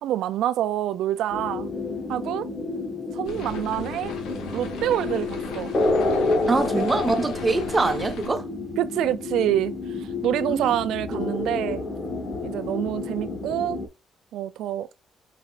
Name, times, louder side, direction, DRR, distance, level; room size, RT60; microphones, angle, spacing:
voice 1, 0.0-1.7 2.1-2.5 3.1-4.1 4.5-5.7 6.6-6.9 8.8-11.9 12.4-13.8 14.3-14.9, right 12 dB, 85° right, 0.4 m, -27 dB
sound 1, 1.3-13.9, left 3 dB, 35° left, 1.3 m, -29 dB
sound 2, 3.2-8.3, left 5 dB, 85° left, 1.2 m, -39 dB
voice 2, 6.5-8.4 10.5-10.8 11.1-11.4, right 3 dB, 25° right, 0.9 m, -24 dB
5.1 x 4.1 x 2.5 m
cardioid pair, 90°, 0 cm